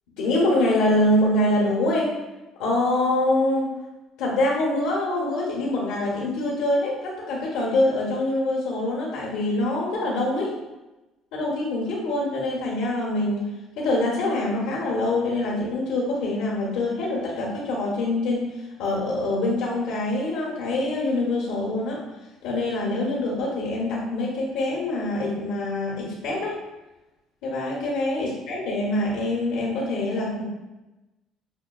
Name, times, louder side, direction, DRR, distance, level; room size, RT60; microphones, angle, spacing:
voice 1, 0.2-2.1 2.6-3.7 4.2-10.5 11.3-13.5 13.8-18.5 18.8-22.0 22.4-26.6 27.4-30.4, left 1 dB, 90° left, -4 dB, 0.9 m, -24 dB
6.2 x 2.2 x 2.3 m, 1.0 s
cardioid pair, 125°, 0 cm